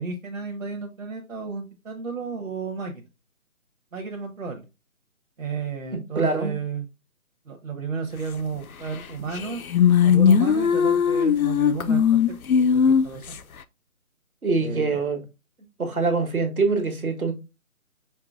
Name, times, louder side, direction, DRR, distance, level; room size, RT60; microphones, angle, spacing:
voice 1, 0.0-3.1 3.9-4.7 5.4-6.9 7.4-9.6 10.0-12.2 12.5-13.4 14.6-15.0, right 4 dB, 65° right, 1.2 m, -32 dB
voice 2, 6.1-6.5 14.4-15.2 15.8-17.3, right 3 dB, 80° right, 1.6 m, -24 dB
sound 1, 9.0-9.1 9.3-13.4, left 7 dB, 75° left, 0.6 m, -19 dB
5.8 x 3.8 x 2.3 m
figure-of-eight pair, 155°, 42 cm